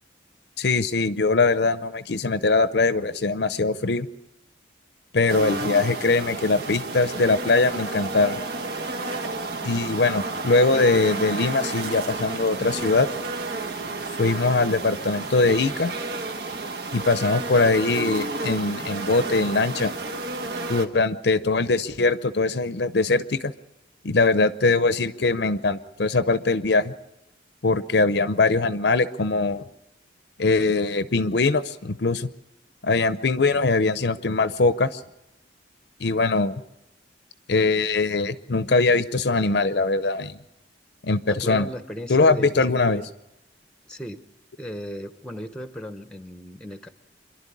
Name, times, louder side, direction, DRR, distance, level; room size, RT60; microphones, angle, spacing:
voice 1, 0.6-4.1 5.1-8.4 9.6-13.1 14.2-15.9 16.9-19.9 20.7-23.5 24.0-26.9 27.6-29.6 30.4-32.3 32.8-35.0 36.0-36.5 37.5-40.4 41.0-41.7 42.1-43.0, left 3 dB, 60° left, 13 dB, 0.7 m, -22 dB
sound 1, 5.3-20.9, right 3 dB, 55° right, 1.2 m, -31 dB
voice 2, 41.3-43.1 43.9-44.2 44.6-46.9, equal, 5° left, 9 dB, 0.9 m, -36 dB
26.5 x 11.5 x 9.8 m, 0.93 s
head